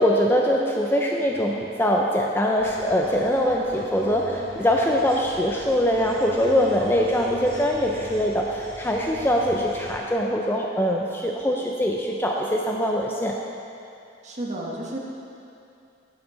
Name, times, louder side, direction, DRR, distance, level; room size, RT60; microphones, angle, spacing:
voice 1, 0.0-13.3, equal, 10° left, 0 dB, 0.4 m, -23 dB
sound 1, 2.6-10.0, right 1 dB, 50° right, 2.2 m, -40 dB
voice 2, 14.2-15.0, right 1 dB, 35° right, -3 dB, 1.3 m, -31 dB
11.0 x 6.2 x 5.0 m, 2.7 s
head